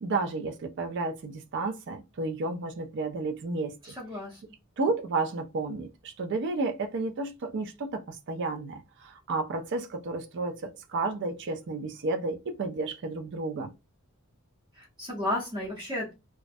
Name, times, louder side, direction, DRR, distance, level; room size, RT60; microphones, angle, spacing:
voice 1, 0.0-3.7 4.8-13.7, right 3 dB, 55° right, 0.4 m, -32 dB
voice 2, 3.8-4.4 14.7-16.1, left 1 dB, 20° right, 0.7 m, -33 dB
2.4 x 2.0 x 2.5 m
head